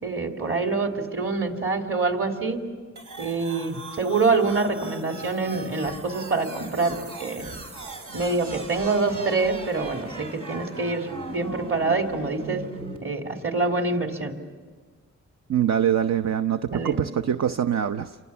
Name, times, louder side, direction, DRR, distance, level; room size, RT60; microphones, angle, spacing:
voice 1, 0.0-2.6 3.2-7.5 8.1-12.6 13.0-14.4 16.7-17.0, right 3 dB, 45° right, 3 dB, 3.3 m, -26 dB
sound 1, 3.0-13.0, right 2 dB, 85° right, 4.4 m, -39 dB
voice 2, 15.5-18.2, right 9 dB, 60° right, 9 dB, 0.8 m, -24 dB
29.5 x 24.5 x 7.2 m, 1.5 s
cardioid pair, 85°, 30 cm